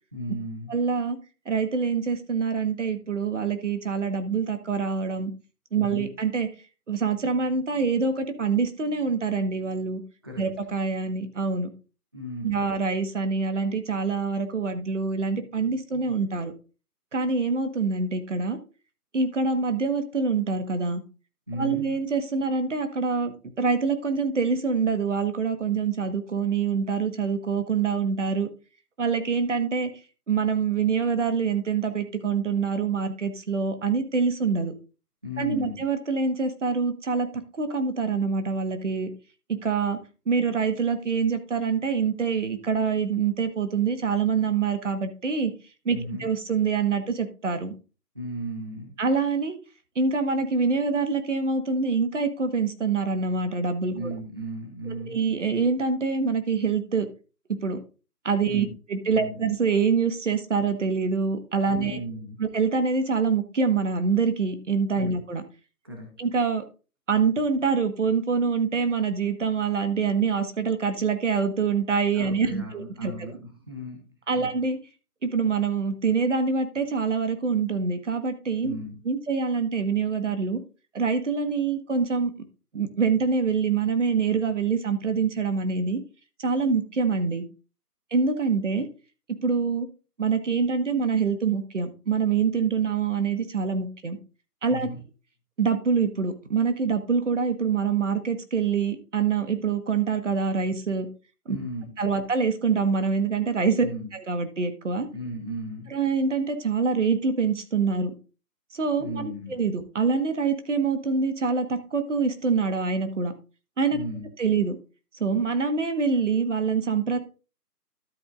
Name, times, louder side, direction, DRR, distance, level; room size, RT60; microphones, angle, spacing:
voice 1, 0.1-0.7 5.7-6.1 10.2-10.4 12.1-12.6 21.5-21.9 35.2-35.8 45.9-46.3 48.1-49.0 53.9-55.2 58.5-58.7 59.1-59.4 61.7-62.4 65.0-65.2 65.8-66.2 72.1-74.0 74.3-74.6 78.6-79.0 94.7-95.0 101.5-101.9 103.8-104.1 105.1-105.9 109.0-109.6 113.9-114.2, equal, 15° right, 0 dB, 0.8 m, -35 dB
voice 2, 0.7-1.2 1.4-5.3 5.7-6.5 6.9-10.0 10.4-11.7 12.4-16.5 17.1-18.6 19.1-21.0 21.6-28.5 29.0-29.9 30.3-34.7 35.4-37.3 37.5-39.1 39.5-40.0 40.3-45.5 45.8-47.7 49.0-49.6 49.9-54.2 55.1-57.1 57.5-57.8 58.2-62.0 62.4-65.4 66.2-66.6 67.1-73.3 74.3-74.8 75.2-78.7 79.0-80.6 80.9-82.3 82.7-86.0 86.4-87.4 88.1-88.8 89.4-89.9 90.2-94.2 94.6-94.9 95.6-101.1 101.5-101.6 102.0-105.1 105.9-108.1 108.7-113.3 113.8-114.0 114.4-114.8 115.2-117.2, right 5 dB, 50° right, 9 dB, 1.5 m, -25 dB
12.5 x 8.0 x 2.6 m, 0.33 s
hypercardioid pair, 170°, 47 cm